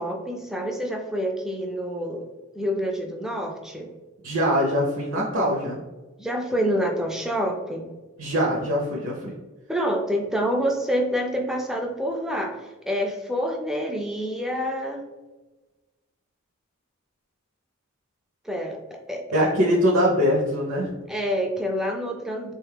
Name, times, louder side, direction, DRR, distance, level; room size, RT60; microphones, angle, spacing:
voice 1, 0.0-2.3 2.5-3.9 6.2-7.9 9.7-15.1 18.4-19.5 21.1-22.5, equal, ahead, 1 dB, 0.3 m, -27 dB
voice 2, 4.2-5.8 8.2-9.3 19.3-20.9, equal, 70° right, -2 dB, 0.6 m, -22 dB
3.5 x 2.3 x 3.3 m, 1.2 s
head